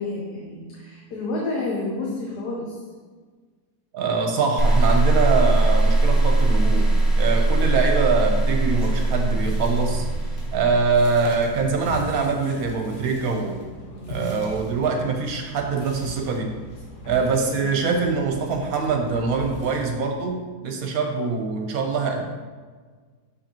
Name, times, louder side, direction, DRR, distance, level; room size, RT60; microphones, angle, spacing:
voice 1, 0.0-2.8 13.9-14.5 17.0-17.7, left 2 dB, 85° left, -3 dB, 1.5 m, -31 dB
voice 2, 3.9-10.0 10.5-13.6 14.1-16.5 17.0-22.2, right 4 dB, 65° right, 2 dB, 1.2 m, -24 dB
sound 1, 4.6-11.7, right 2 dB, ahead, 0.3 m, -20 dB
sound 2, 8.5-19.9, equal, 55° left, 1.3 m, -39 dB
6.6 x 5.4 x 2.9 m, 1.5 s
omnidirectional pair, 1.7 m